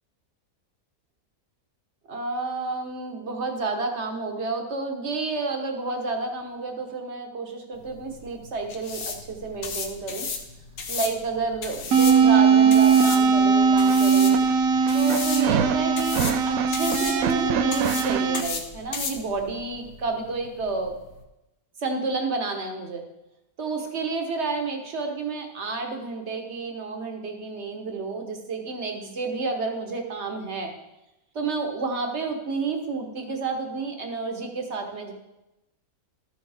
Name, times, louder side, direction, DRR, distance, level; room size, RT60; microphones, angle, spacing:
voice 1, 2.1-10.3 10.9-14.4 14.9-21.0 21.8-23.0 23.6-30.7 31.3-35.1, right 3 dB, 50° right, 4 dB, 1.4 m, -30 dB
sound 1, 7.8-21.2, left 5 dB, 75° left, 1.4 m, -35 dB
sound 2, 11.9-18.4, right 6 dB, 70° right, 1.0 m, -19 dB
13.0 x 7.1 x 3.4 m, 0.94 s
omnidirectional pair, 1.5 m